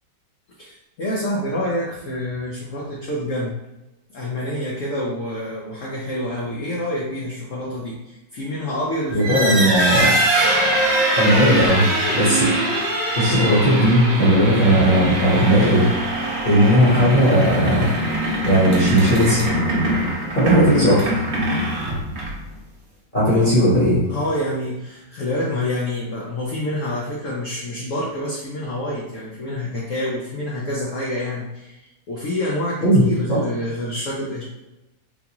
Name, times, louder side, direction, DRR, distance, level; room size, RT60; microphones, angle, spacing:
voice 1, 0.6-3.6 4.1-9.9 19.1-19.3 23.3-23.5 24.1-34.4, left 1 dB, 65° left, -5 dB, 0.8 m, -27 dB
voice 2, 9.1-10.1 11.2-11.8 12.1-12.5 13.1-15.9 16.4-17.9 18.4-19.4 20.3-21.2 23.1-24.0 32.8-33.0 33.3-33.4, equal, 30° left, -9 dB, 1.1 m, -16 dB
sound 1, 9.1-22.5, right 1 dB, 50° right, 0.8 m, -22 dB
3.9 x 2.3 x 2.9 m, 0.97 s
omnidirectional pair, 2.0 m